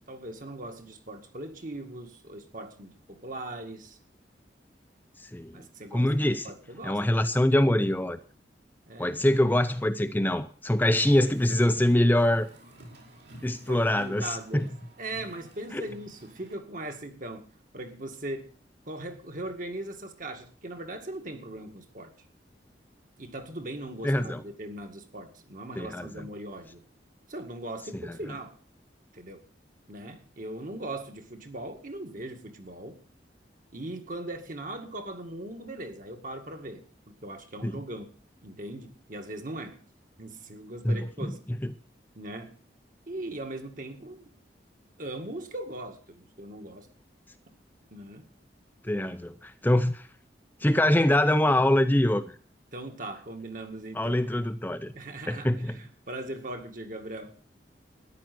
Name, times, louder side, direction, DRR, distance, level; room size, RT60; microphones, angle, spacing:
voice 1, 0.1-4.0 5.5-7.0 8.9-9.2 13.4-18.5 18.9-22.1 23.2-26.8 27.3-28.6 29.1-29.4 29.9-33.0 33.7-38.1 38.4-39.8 40.2-41.4 42.2-42.5 43.1-44.2 45.0-46.9 47.9-48.3 52.7-54.2 54.9-57.3, right 1 dB, 50° right, 2.1 m, -39 dB
voice 2, 5.9-6.5 6.8-8.2 9.0-12.5 13.4-14.7 15.7-15.8 24.0-24.4 25.8-26.1 37.6-37.7 40.8-41.3 48.8-50.1 50.6-52.2 53.9-54.9 55.3-55.7, left 1 dB, 10° left, 0.6 m, -24 dB
Car, 10.9-16.6, right 1 dB, 70° right, 4.5 m, -50 dB
14.0 x 10.5 x 6.1 m
head